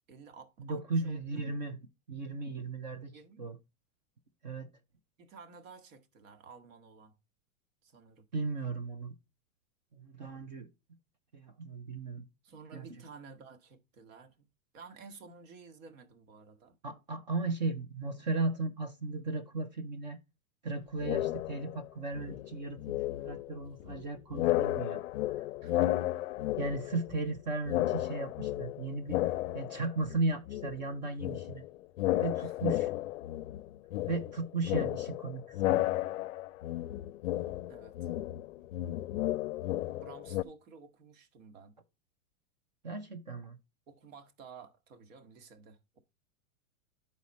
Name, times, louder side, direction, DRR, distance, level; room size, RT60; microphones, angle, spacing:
voice 1, 0.1-1.4 3.1-3.6 5.2-7.1 7.8-8.3 12.4-14.5 14.7-16.7 25.6-25.9 32.4-32.6 37.7-38.1 40.0-41.7 43.9-46.0, right 5 dB, 65° right, 1.4 m, -53 dB
voice 2, 0.6-1.8 2.1-3.6 4.4-4.7 8.3-9.1 9.9-10.7 11.3-12.2 12.7-12.8 16.8-20.2 20.6-25.0 25.4-25.5 26.6-29.2 29.5-31.6 32.2-32.9 34.1-35.8 42.8-43.6, right 3 dB, 35° right, 0.4 m, -36 dB
sound 1, 21.0-21.9 22.1-24.1 24.3-27.4 27.7-30.2 30.5-40.4, left 15 dB, 70° left, 0.5 m, -33 dB
10.5 x 4.1 x 4.0 m
supercardioid pair, 180°, 42 cm